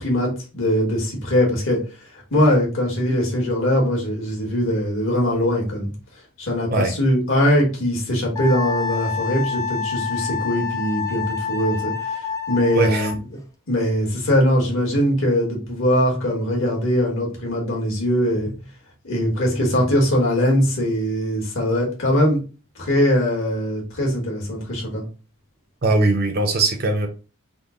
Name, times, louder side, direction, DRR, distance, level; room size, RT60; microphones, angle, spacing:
voice 1, 0.0-1.8 2.3-5.9 6.4-11.9 12.5-13.2 13.7-18.5 19.0-22.4 22.8-25.0, equal, 65° left, 1.4 m, -21 dB
Wind instrument woodwind instrument, 8.4-13.2, left 6 dB, 15° left, 0.4 m, -28 dB
voice 2, 12.7-13.1 25.8-27.1, right 2 dB, 45° right, 0.6 m, -20 dB
3.7 x 2.1 x 3.7 m
head